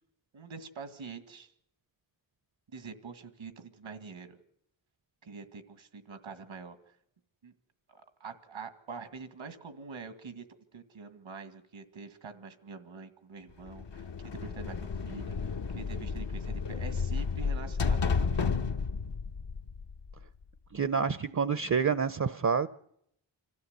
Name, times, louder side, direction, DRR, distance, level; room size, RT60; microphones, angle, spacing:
voice 1, 0.3-1.5 2.7-4.4 5.2-6.8 7.4-7.5 7.9-10.4 10.7-14.0 14.4-15.4 15.7-18.6, right 4 dB, 85° right, 9 dB, 2.0 m, -45 dB
sound 1, 13.7-20.4, left 5 dB, 65° left, 1.2 m, -32 dB
voice 2, 20.7-22.7, right 6 dB, 40° right, 14 dB, 0.7 m, -28 dB
25.5 x 14.5 x 8.1 m, 0.75 s
cardioid pair, 65°, 46 cm